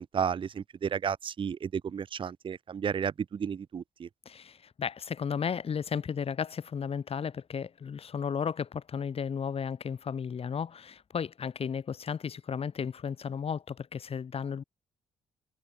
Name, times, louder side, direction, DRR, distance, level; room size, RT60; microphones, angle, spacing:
voice 1, 0.0-4.1, right 7 dB, 40° right, 0.8 m, -32 dB
voice 2, 4.2-14.6, left 7 dB, 45° left, 4.5 m, -34 dB
figure-of-eight pair, 40°, 14 cm